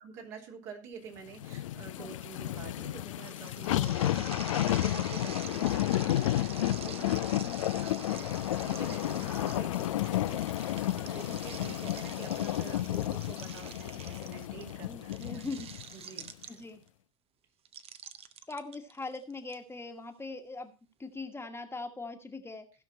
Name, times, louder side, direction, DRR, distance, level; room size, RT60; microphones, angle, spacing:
voice 1, 0.0-15.4 15.9-16.6, right 5 dB, 60° right, 1 dB, 3.0 m, -48 dB
sound 1, 1.4-15.8 16.3-16.4, left 14 dB, 75° left, 0.4 m, -32 dB
voice 2, 2.0-2.4 14.8-15.7 16.5-16.8 18.5-20.7 21.0-22.7, left 3 dB, 15° left, 5 dB, 1.4 m, -41 dB
sound 2, 3.3-16.9 17.7-19.5, right 8 dB, 35° right, 0.8 m, -47 dB
16.0 x 5.8 x 4.3 m, 0.34 s
figure-of-eight pair, 75°, 17 cm